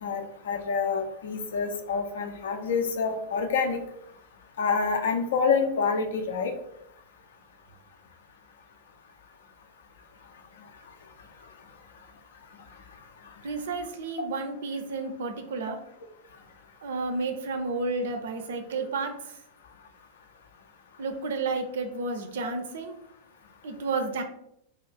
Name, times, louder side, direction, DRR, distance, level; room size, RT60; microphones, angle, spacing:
voice 1, 0.0-3.8 4.6-6.5 22.4-22.5, left 5 dB, 60° left, 5 dB, 0.4 m, -27 dB
voice 2, 13.4-15.8 16.8-19.1 21.0-23.0 23.6-24.2, right 3 dB, 60° right, 6 dB, 0.4 m, -31 dB
2.4 x 2.4 x 3.3 m, 0.76 s
figure-of-eight pair, 90°, 0 cm